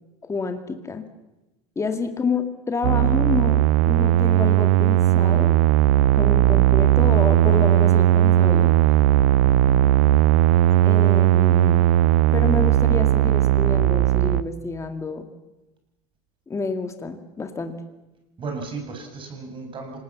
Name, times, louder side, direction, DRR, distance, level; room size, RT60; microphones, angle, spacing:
voice 1, 0.2-1.0 1.8-5.6 6.1-8.7 10.8-11.9 12.3-15.3 16.5-17.8, left 4 dB, 15° left, 6 dB, 2.1 m, -28 dB
sound 1, 2.8-14.4, right 14 dB, 70° right, 0.8 m, -17 dB
voice 2, 9.4-9.7 18.4-20.0, right 4 dB, 30° right, 4 dB, 6.6 m, -35 dB
26.0 x 19.5 x 7.3 m, 1.0 s
supercardioid pair, 130°, 18 cm